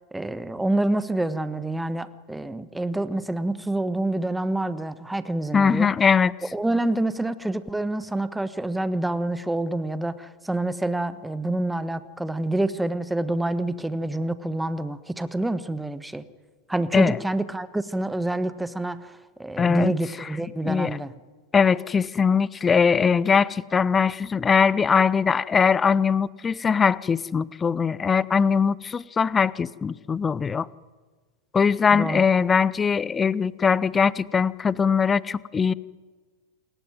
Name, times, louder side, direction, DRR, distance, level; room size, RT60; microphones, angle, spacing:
voice 1, 0.1-5.9 6.5-16.2 16.7-21.1 31.9-32.2, right 2 dB, 5° right, 14 dB, 1.4 m, -27 dB
voice 2, 5.5-6.3 16.9-17.2 19.6-19.9 20.2-20.3 20.6-21.0 21.5-30.7 31.5-35.7, left 6 dB, 20° left, 22 dB, 0.7 m, -21 dB
28.5 x 22.0 x 9.5 m, 1.4 s
figure-of-eight pair, 90°, 0 cm